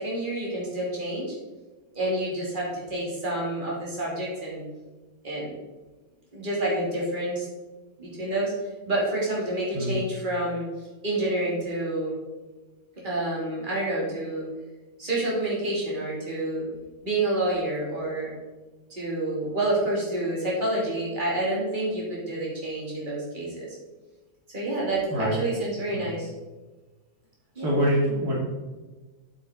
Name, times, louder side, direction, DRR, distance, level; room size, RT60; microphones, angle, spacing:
voice 1, 0.0-1.3 1.9-4.6 5.2-5.5 6.3-7.5 8.0-8.5 8.9-10.6 11.0-12.2 13.0-14.4 15.0-16.7 17.0-18.3 18.9-23.8 24.5-26.3 27.5-27.7, right 1 dB, 30° right, -5 dB, 3.2 m, -28 dB
voice 2, 27.6-28.3, equal, 65° right, -5 dB, 2.8 m, -24 dB
8.8 x 8.2 x 4.0 m, 1.2 s
omnidirectional pair, 1.8 m